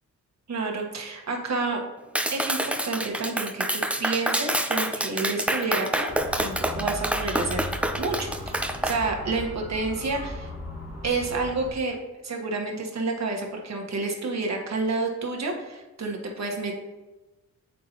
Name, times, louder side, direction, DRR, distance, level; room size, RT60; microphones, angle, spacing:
voice 1, 0.5-1.8 2.3-6.1 6.4-7.7 8.0-10.5 11.0-11.9 12.2-16.7, right 3 dB, 50° right, 1 dB, 1.4 m, -29 dB
Clapping, 2.1-9.0, right 1 dB, 5° right, 0.5 m, -27 dB
Motor vehicle (road) / Siren, 6.1-11.7, left 1 dB, 85° left, 2.0 m, -37 dB
7.4 x 5.6 x 3.0 m, 1.1 s
cardioid pair, 60°, 34 cm